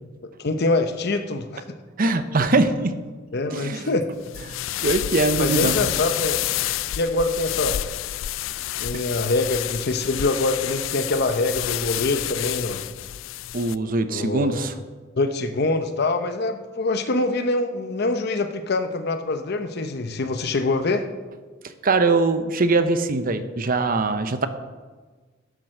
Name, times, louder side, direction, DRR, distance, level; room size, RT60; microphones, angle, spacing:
voice 1, 0.2-1.6 3.3-4.1 5.4-6.4 6.9-7.8 8.8-12.8 14.1-14.7 15.2-21.1, left 2 dB, 55° left, 8 dB, 0.8 m, -24 dB
voice 2, 2.0-2.9 3.5-3.9 4.5-4.6 4.8-5.7 8.9-9.0 13.5-14.7 21.8-24.5, right 3 dB, 45° right, 10 dB, 0.7 m, -22 dB
sound 1, 4.2-13.8, left 14 dB, 75° left, 0.3 m, -29 dB
12.0 x 7.6 x 6.5 m, 1.4 s
head